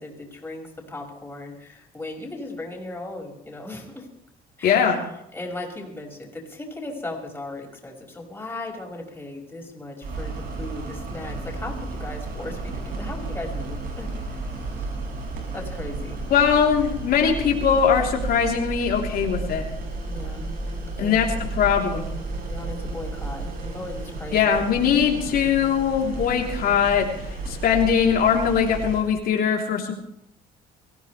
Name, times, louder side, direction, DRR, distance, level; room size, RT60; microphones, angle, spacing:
voice 1, 0.0-4.1 4.6-5.0 5.3-14.9 15.5-16.2 20.1-20.5 21.0-21.3 22.5-24.7, left 2 dB, 10° left, -1 dB, 6.1 m, -37 dB
voice 2, 4.6-5.0 16.3-19.6 21.0-21.3 21.5-22.1 24.3-27.1 27.5-29.9, left 7 dB, 65° left, 0 dB, 3.4 m, -21 dB
sound 1, 10.0-29.0, right 2 dB, 60° right, 6.4 m, -32 dB
23.5 x 16.0 x 3.3 m, 0.81 s
cardioid pair, 115°, 17 cm